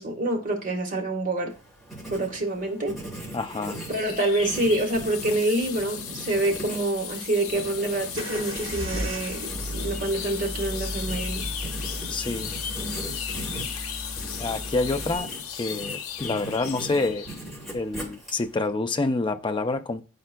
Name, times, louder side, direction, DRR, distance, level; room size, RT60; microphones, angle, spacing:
voice 1, 0.0-1.5 2.1-3.0 3.9-11.4, right 1 dB, 40° right, 1.4 m, -27 dB
Writing, 1.5-18.7, right 1 dB, ahead, 2.6 m, -40 dB
voice 2, 3.3-3.9 12.1-12.5 14.4-17.3 17.7-20.0, left 3 dB, 25° left, 0.4 m, -28 dB
sound 1, 3.6-17.5, left 8 dB, 85° left, 0.6 m, -36 dB
sound 2, 8.2-15.2, equal, 60° right, 1.1 m, -35 dB
11.0 x 4.3 x 2.2 m
head